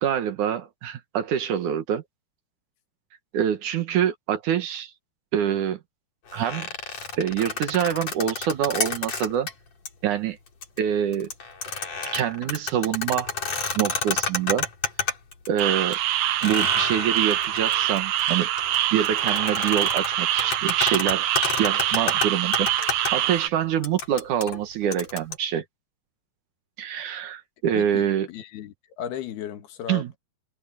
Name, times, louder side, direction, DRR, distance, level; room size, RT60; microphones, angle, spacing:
voice 1, 0.0-2.0 3.3-4.9 5.3-5.8 6.3-6.7 7.2-9.5 10.0-10.4 10.8-11.3 12.1-13.3 13.7-14.7 15.5-16.0 16.4-18.5 18.9-21.3 21.6-25.6 26.8-28.3 29.9-30.2, right 9 dB, 60° right, 2.4 m, -25 dB
sound 1, 6.3-9.5 9.9-10.0 10.5-10.8 11.1-15.6 15.9-16.0 16.4-23.1 23.8-25.4, left 5 dB, 45° left, 4.8 m, -30 dB
sound 2, 15.6-23.5, right 13 dB, 80° right, 1.6 m, -25 dB
voice 2, 27.7-30.2, left 9 dB, 80° left, 3.8 m, -35 dB
omnidirectional pair, 4.5 m